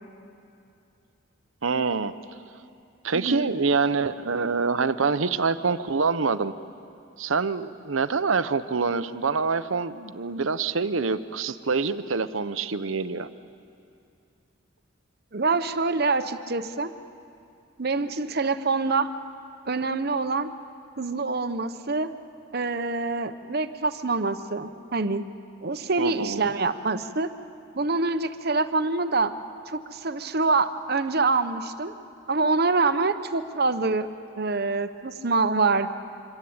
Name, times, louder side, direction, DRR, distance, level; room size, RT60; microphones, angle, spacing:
voice 1, 1.6-2.1 3.0-6.5 7.2-13.3 26.0-26.5, right 4 dB, 90° right, 12 dB, 0.9 m, -25 dB
voice 2, 3.1-3.5 15.3-16.9 17.8-19.1 19.7-20.5 21.0-22.1 22.5-25.3 25.6-27.3 27.7-29.3 29.7-31.9 32.3-34.1 34.4-35.9, right 3 dB, 50° right, 10 dB, 1.0 m, -25 dB
26.0 x 25.5 x 8.8 m, 2.6 s
head